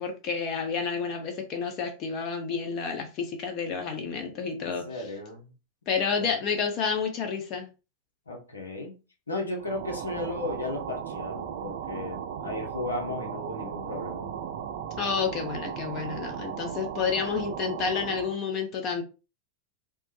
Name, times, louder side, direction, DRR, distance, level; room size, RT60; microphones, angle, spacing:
voice 1, 0.0-4.9 5.9-7.7 15.0-19.0, left 5 dB, 40° left, 0.8 m, -30 dB
voice 2, 4.6-5.5 6.1-6.4 8.3-14.3, left 2 dB, 90° left, 0.7 m, -35 dB
sound 1, 9.6-18.4, right 8 dB, 65° right, 0.4 m, -36 dB
3.2 x 2.1 x 3.1 m
hypercardioid pair, 95°, 0 cm